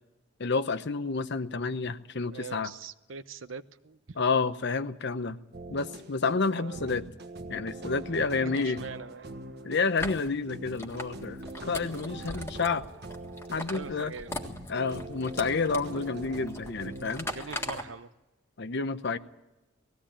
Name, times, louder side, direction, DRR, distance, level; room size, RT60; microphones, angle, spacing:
voice 1, 0.4-2.7 4.2-5.4 5.7-7.1 7.5-8.8 9.6-12.9 13.5-14.1 14.7-17.3 18.6-19.2, left 4 dB, 60° left, 12 dB, 0.9 m, -29 dB
voice 2, 2.3-4.2 6.5-6.9 8.2-9.3 12.2-12.5 13.5-14.3 17.3-18.1, right 5 dB, 75° right, 13 dB, 0.8 m, -42 dB
sound 1, 5.5-17.8, right 2 dB, 55° right, 1.5 m, -43 dB
sound 2, 10.0-17.8, left 1 dB, 10° left, 1.7 m, -41 dB
19.0 x 16.0 x 8.8 m, 1.0 s
head